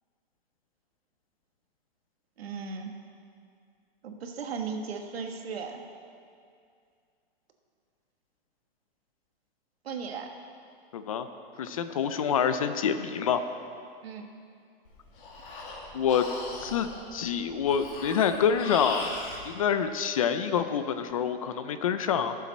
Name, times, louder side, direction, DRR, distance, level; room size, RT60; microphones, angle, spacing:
voice 1, 2.4-2.9 4.0-5.8 9.8-10.3 14.0-14.3, right 5 dB, 90° right, 3 dB, 1.5 m, -36 dB
voice 2, 10.9-11.3 11.6-13.4 15.9-16.2 16.6-19.2 19.4-22.4, left 7 dB, 35° left, 10 dB, 0.4 m, -27 dB
Breathing, 14.9-19.4, left 2 dB, 60° left, 2.1 m, -39 dB
17.0 x 7.3 x 4.1 m, 2.3 s
hypercardioid pair, 170°, 30 cm